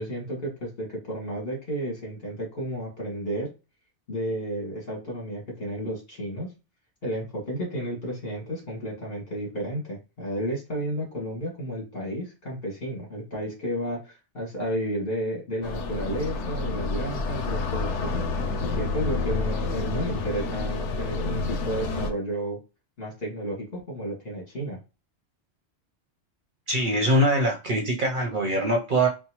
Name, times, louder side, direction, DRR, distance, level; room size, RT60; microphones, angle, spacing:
voice 1, 0.0-3.5 4.1-6.5 7.0-18.2 18.6-22.6 23.0-24.8, right 1 dB, 55° left, -2 dB, 2.0 m, -32 dB
sound 1, 15.6-22.1, left 3 dB, 85° left, 0.9 m, -29 dB
voice 2, 26.7-29.1, right 1 dB, 55° right, 1 dB, 0.7 m, -23 dB
4.3 x 2.0 x 2.9 m, 0.29 s
omnidirectional pair, 1.2 m